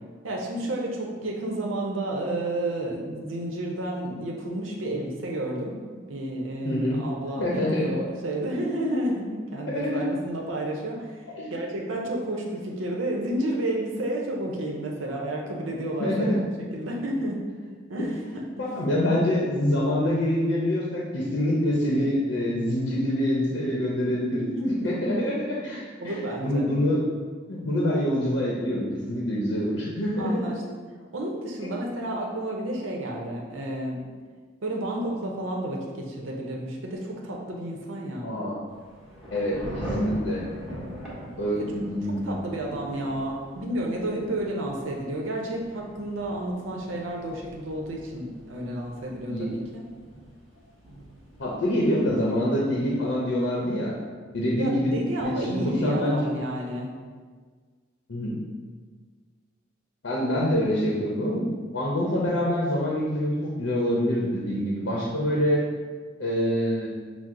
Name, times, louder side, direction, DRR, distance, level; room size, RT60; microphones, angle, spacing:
voice 1, 0.2-16.3 16.7-17.4 17.9-18.7 24.1-25.3 26.0-26.6 30.2-30.6 31.1-34.0 34.6-38.3 41.5-41.7 42.0-49.8 54.6-56.9, right 1 dB, 90° right, -1 dB, 0.6 m, -31 dB
voice 2, 6.6-7.0 7.4-7.9 9.7-10.0 11.4-11.5 16.0-16.4 18.0-18.1 18.6-25.3 25.6-27.0 27.5-30.4 31.6-31.7 38.2-38.6 39.3-40.4 41.4-42.4 49.3-49.5 51.4-53.9 54.3-54.9 55.2-56.3 58.1-58.3 60.0-61.5 61.7-65.6 66.2-66.9, left 1 dB, 70° left, -4 dB, 0.7 m, -25 dB
Thunder / Rain, 38.7-53.1, equal, 5° right, 1.1 m, -41 dB
6.0 x 2.0 x 3.7 m, 1.6 s
head